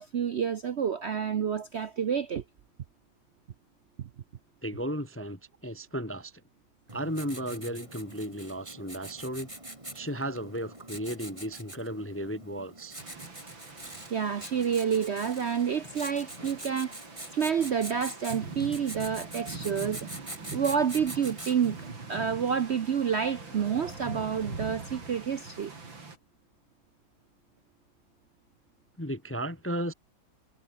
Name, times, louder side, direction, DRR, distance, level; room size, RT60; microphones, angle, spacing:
voice 1, 0.0-2.4 14.1-17.0 17.3-20.1 20.5-21.8 22.1-25.7, right 7 dB, 65° right, 0.6 m, -29 dB
voice 2, 4.6-6.3 6.9-9.5 9.9-13.0 29.0-29.9, equal, 10° left, 1.1 m, -34 dB
Writing, 6.9-21.8, right 1 dB, 15° right, 4.3 m, -44 dB
sound 1, 13.0-26.2, right 4 dB, 85° right, 5.0 m, -43 dB
sound 2, 21.7-25.8, right 1 dB, 40° right, 8.2 m, -51 dB
omnidirectional pair, 2.1 m